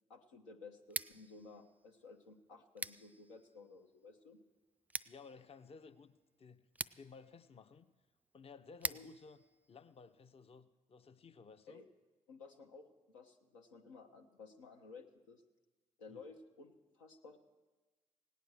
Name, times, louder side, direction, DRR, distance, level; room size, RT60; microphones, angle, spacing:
voice 1, 0.1-4.4 8.9-9.1 11.7-11.9 12.3-15.4 16.0-17.4, left 4 dB, 85° left, 2 dB, 0.8 m, -55 dB
Scissors, 0.8-10.6, right 2 dB, 10° right, 0.3 m, -48 dB
voice 2, 5.1-7.9 8.3-9.4 9.7-11.8 16.1-16.2, left 5 dB, 40° left, 10 dB, 0.7 m, -57 dB
17.0 x 9.1 x 6.3 m, 1.2 s
hypercardioid pair, 40°, 16 cm